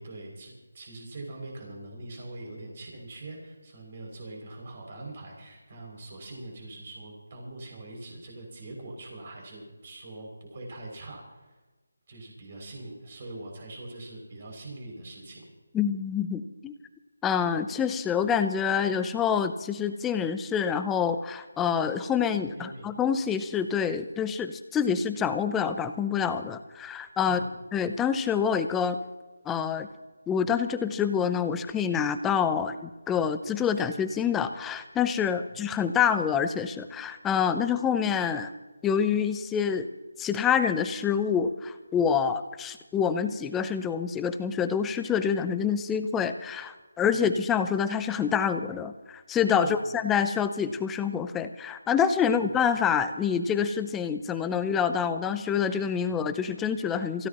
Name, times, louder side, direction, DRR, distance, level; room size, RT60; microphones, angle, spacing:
voice 1, 0.0-11.6 12.1-15.4 22.5-22.9 27.2-27.5 35.5-35.6 47.1-47.2 49.6-49.9 52.3-52.5, right 2 dB, 35° right, 1 dB, 6.3 m, -43 dB
voice 2, 15.7-16.7 17.2-27.4 27.7-29.0 29.5-29.9 30.3-38.5 38.8-39.9 40.2-57.3, left 7 dB, 5° left, 10 dB, 0.5 m, -27 dB
27.0 x 16.0 x 3.0 m, 1.2 s
figure-of-eight pair, 170°, 0 cm